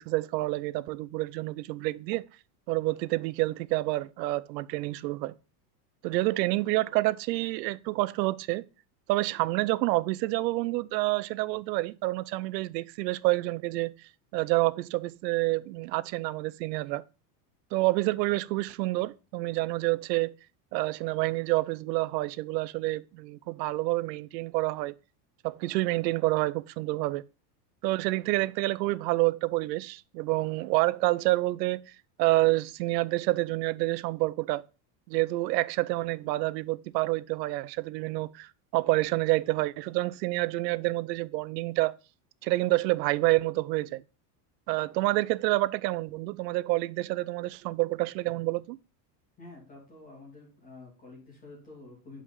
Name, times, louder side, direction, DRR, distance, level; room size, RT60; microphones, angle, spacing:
voice 1, 0.0-2.2 2.7-5.3 6.0-8.6 9.1-13.9 14.3-17.0 17.7-20.3 20.7-24.9 25.4-27.2 27.8-31.8 32.2-34.6 35.1-42.0 42.4-44.0 44.7-48.8, right 20 dB, 80° right, 0.6 m, -28 dB
voice 2, 49.4-52.2, left 2 dB, 15° left, 2.9 m, -49 dB
5.5 x 4.9 x 5.4 m
supercardioid pair, 170°, 50 cm